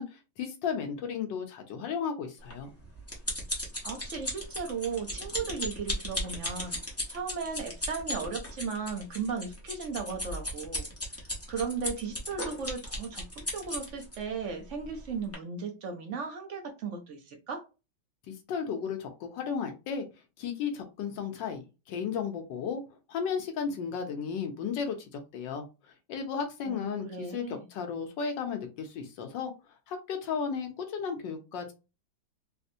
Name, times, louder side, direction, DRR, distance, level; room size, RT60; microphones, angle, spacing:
voice 1, 0.0-2.7 18.3-20.1 20.4-21.6 21.9-22.8 23.1-29.5 29.9-31.7, left 6 dB, 70° left, 5 dB, 1.4 m, -34 dB
sound 1, 2.5-14.2 14.8-15.0 15.3-15.4, left 1 dB, 20° left, 0.4 m, -36 dB
voice 2, 3.5-6.8 7.1-10.9 11.2-17.6 26.6-27.6, right 5 dB, 60° right, 3 dB, 0.8 m, -36 dB
4.1 x 2.1 x 2.6 m, 0.28 s
omnidirectional pair, 2.2 m